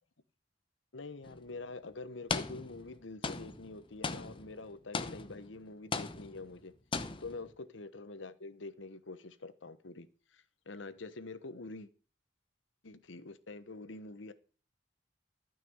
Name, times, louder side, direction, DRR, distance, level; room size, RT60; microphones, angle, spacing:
voice 1, 0.9-6.7 7.2-11.9 12.8-14.3, left 3 dB, 85° left, 1.0 m, -46 dB
sound 1, 1.2-1.4 2.3-2.9 3.2-5.6 5.9-6.6 6.9-7.5, left 4 dB, 25° left, 0.8 m, -38 dB
12.5 x 6.0 x 7.8 m
head